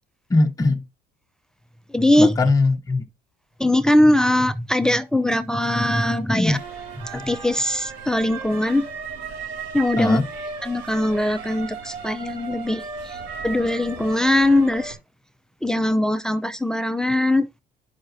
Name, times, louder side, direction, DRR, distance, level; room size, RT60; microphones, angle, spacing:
voice 1, 0.3-0.8 2.2-3.0 6.3-6.6 10.0-10.3, left 3 dB, 20° left, 0.8 m, -20 dB
voice 2, 1.9-2.4 3.6-6.6 7.0-8.9 9.7-10.2 10.6-15.0 15.6-17.5, left 1 dB, 5° left, 0.5 m, -21 dB
sound 1, 6.4-14.9, right 5 dB, 80° right, 3.5 m, -35 dB
10.0 x 5.7 x 2.6 m
cardioid pair, 110°, 17 cm